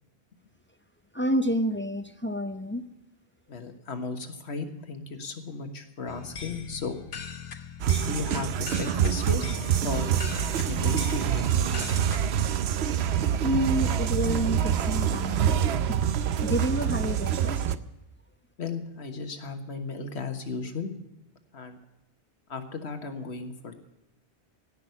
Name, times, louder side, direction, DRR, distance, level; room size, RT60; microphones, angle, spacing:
voice 1, 1.1-2.8 13.4-15.6 15.9-16.0 16.4-17.6, equal, 15° left, 10 dB, 0.5 m, -29 dB
voice 2, 3.5-7.0 8.0-9.4 9.8-10.1 10.7-12.0 18.6-20.9 21.5-21.8 22.5-23.8, left 4 dB, 75° left, 7 dB, 1.7 m, -35 dB
sound 1, 6.1-12.5, left 5 dB, 55° left, 1.1 m, -40 dB
sound 2, 7.8-17.8, right 9 dB, 75° right, 0.9 m, -26 dB
sound 3, 8.0-13.6, right 2 dB, 45° right, 2.2 m, -50 dB
16.5 x 6.2 x 9.4 m, 0.96 s
omnidirectional pair, 1.1 m